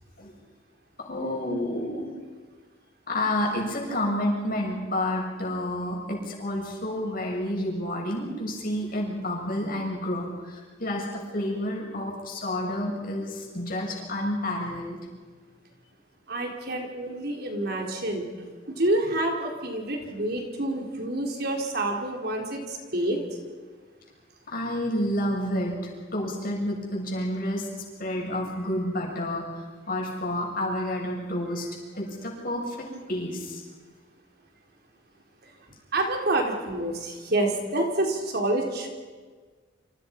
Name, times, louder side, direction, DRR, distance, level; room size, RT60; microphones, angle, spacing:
voice 1, 1.0-2.1 3.1-15.0 24.5-27.7 28.0-33.6, left 1 dB, 50° left, -1 dB, 7.2 m, -30 dB
voice 2, 16.3-18.3 18.7-23.2 35.9-38.9, right 1 dB, 55° right, 1 dB, 4.2 m, -28 dB
28.5 x 27.0 x 5.5 m, 1.5 s
head